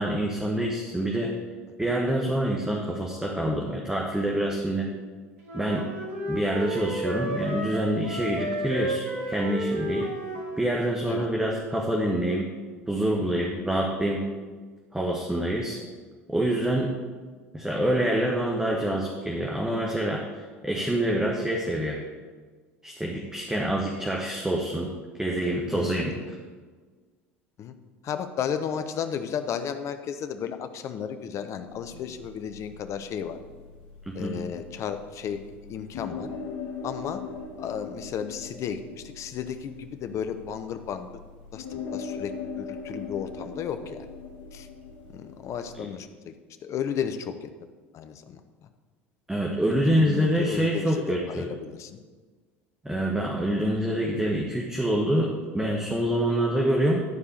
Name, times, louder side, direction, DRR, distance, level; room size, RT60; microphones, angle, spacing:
voice 1, 0.0-1.4 1.8-4.9 5.5-5.9 6.3-10.1 10.6-12.5 12.9-14.3 14.9-15.8 16.3-16.9 17.5-22.0 22.8-26.1 34.1-34.4 49.3-51.4 52.8-57.0, right 1 dB, 10° right, -1 dB, 1.3 m, -26 dB
sound 1, 5.4-10.6, right 1 dB, 80° right, 1.6 m, -32 dB
voice 2, 25.7-26.3 27.6-27.7 28.0-33.4 34.1-35.4 35.7-36.3 36.8-37.2 37.6-41.1 41.5-41.7 41.9-44.1 44.5-44.7 45.1-46.4 46.6-47.5 47.9-48.7 49.6-52.0, left 8 dB, 45° left, 9 dB, 0.8 m, -34 dB
sound 2, 31.7-45.8, left 5 dB, 60° left, 1.7 m, -41 dB
12.0 x 4.8 x 6.6 m, 1.5 s
hypercardioid pair, 70°, 7 cm